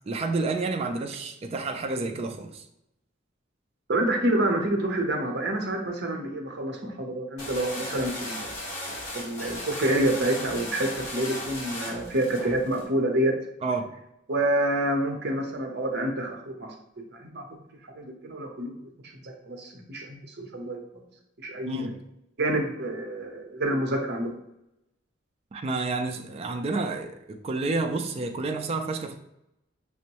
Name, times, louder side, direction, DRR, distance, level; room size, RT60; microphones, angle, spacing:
voice 1, 0.1-2.6 13.6-13.9 21.7-22.0 25.5-29.2, right 3 dB, 30° right, 5 dB, 0.3 m, -30 dB
voice 2, 3.9-8.5 9.2-13.3 14.3-16.7 17.1-17.4 18.0-18.7 19.2-20.8 21.4-21.9 22.4-24.3, right 1 dB, 55° right, 2 dB, 0.7 m, -27 dB
sound 1, 7.4-12.8, left 1 dB, 40° left, 1.3 m, -36 dB
6.0 x 2.1 x 2.8 m, 0.83 s
head